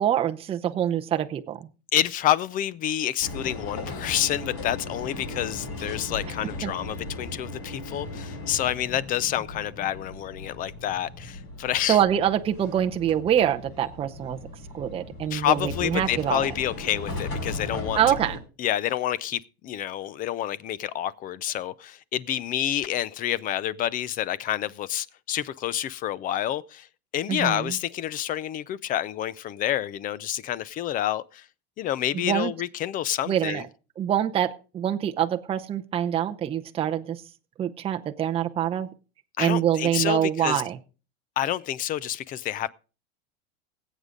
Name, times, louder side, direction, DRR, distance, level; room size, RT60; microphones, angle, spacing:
voice 1, 0.0-1.7 6.6-6.7 11.9-14.4 14.7-16.4 18.0-18.4 27.3-27.8 32.1-32.5 33.3-33.7 34.0-37.2 37.6-38.9 39.4-40.8, right 10 dB, 20° right, 0.6 m, -25 dB
voice 2, 1.9-12.0 15.3-18.0 18.6-26.9 27.1-31.4 31.8-33.6 39.4-40.6 41.4-42.7, left 12 dB, 25° left, 0.5 m, -28 dB
sound 1, 3.2-18.4, left 2 dB, 45° left, 5.3 m, -37 dB
20.0 x 8.2 x 3.8 m
supercardioid pair, 145°, 31 cm